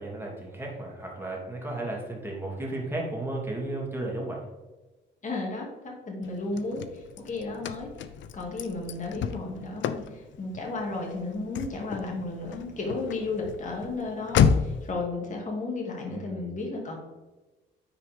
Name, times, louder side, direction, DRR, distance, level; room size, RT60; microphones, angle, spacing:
voice 1, 0.0-4.5 16.0-16.6, right 2 dB, 10° right, -2 dB, 2.5 m, -34 dB
voice 2, 5.2-7.9 8.3-17.0, left 3 dB, 40° left, -1 dB, 2.3 m, -33 dB
Car / Slam, 6.2-14.9, left 7 dB, 70° left, 0.5 m, -31 dB
9.5 x 4.8 x 3.6 m, 1.2 s
cardioid pair, 90°, 20 cm